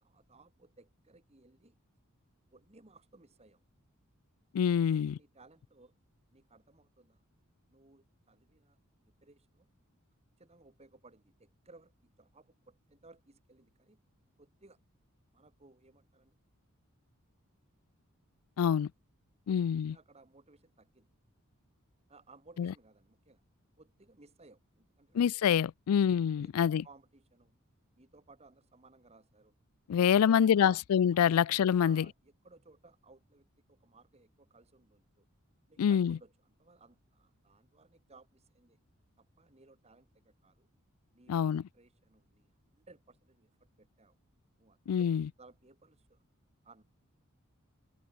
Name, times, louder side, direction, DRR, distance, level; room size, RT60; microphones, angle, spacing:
voice 1, 0.0-1.7 2.5-3.6 4.7-5.9 6.3-7.2 7.7-8.8 9.2-9.7 10.4-14.0 14.4-14.8 15.3-16.3 19.5-21.1 22.1-23.4 23.8-25.5 26.3-27.6 28.0-29.5 29.9-30.8 31.3-31.4 31.8-35.2 35.7-38.8 39.2-40.7 41.1-41.4 41.7-43.5 43.8-44.2 44.6-46.2 46.6-46.8, right 3 dB, 30° right, 1.7 m, -60 dB
voice 2, 4.5-5.2 18.6-18.9 19.5-20.0 22.6-22.7 25.1-26.8 29.9-32.1 35.8-36.2 41.3-41.6 44.9-45.3, left 8 dB, 90° left, 0.4 m, -26 dB
head